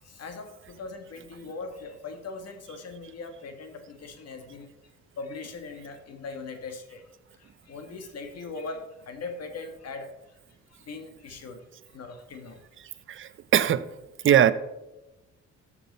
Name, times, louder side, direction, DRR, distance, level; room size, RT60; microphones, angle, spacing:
voice 1, 0.0-4.7 5.2-7.1 7.4-10.4 10.7-12.6 13.2-13.3, left 3 dB, 55° left, 6 dB, 1.6 m, -40 dB
voice 2, 13.1-13.9 14.2-14.5, right 10 dB, 40° right, 14 dB, 0.6 m, -20 dB
13.0 x 5.9 x 4.1 m, 0.99 s
cardioid pair, 90°, 30 cm